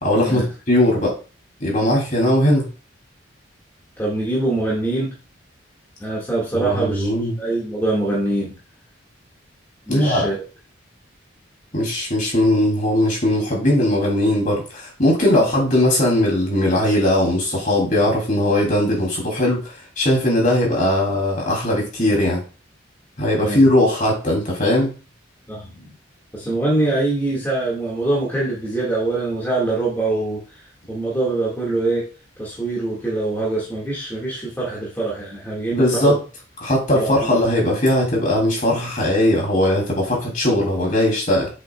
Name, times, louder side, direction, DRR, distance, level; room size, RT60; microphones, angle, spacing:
voice 1, 0.0-0.4 0.7-1.1 1.6-2.6 6.5-7.4 9.9-10.3 11.7-22.4 23.2-24.9 35.7-36.2 36.6-41.5, left 1 dB, 40° left, -1 dB, 3.2 m, -19 dB
voice 2, 4.0-5.1 6.0-7.1 7.4-8.6 9.9-10.4 15.4-15.5 23.4-23.6 25.5-25.9 26.3-30.6 30.9-32.1 32.4-36.2 36.9-37.3, right 2 dB, 10° left, -5 dB, 2.0 m, -24 dB
7.6 x 6.8 x 2.4 m, 0.34 s
head